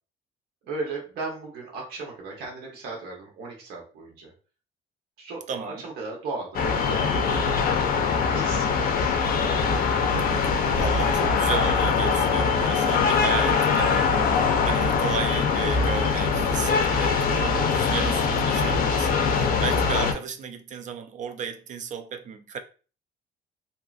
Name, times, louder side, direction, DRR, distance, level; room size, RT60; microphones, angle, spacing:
voice 1, 0.6-4.3 5.2-7.9 8.2-9.3, right 3 dB, 75° right, 1.0 m, -36 dB
voice 2, 5.5-5.8 10.8-22.6, right 6 dB, 45° right, 0.4 m, -34 dB
sound 1, 6.5-20.1, left 5 dB, 60° left, 0.5 m, -22 dB
2.7 x 2.4 x 2.3 m
cardioid pair, 110°, 17 cm